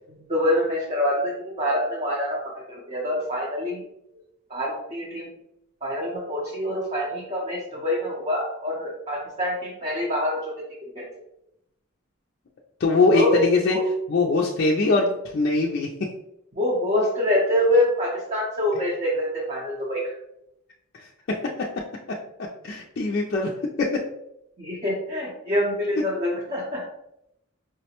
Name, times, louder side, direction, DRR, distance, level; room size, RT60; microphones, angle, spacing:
voice 1, 0.1-3.8 4.5-5.3 5.8-10.5 10.9-11.0 13.1-13.4 13.7-13.8 16.5-20.0 24.6-26.8, left 1 dB, 30° right, -5 dB, 0.7 m, -25 dB
voice 2, 12.8-13.8 14.1-15.9 20.9-21.1 22.6-23.5 23.8-23.9, left 3 dB, 50° left, -3 dB, 0.4 m, -21 dB
4.7 x 2.1 x 2.8 m, 0.81 s
head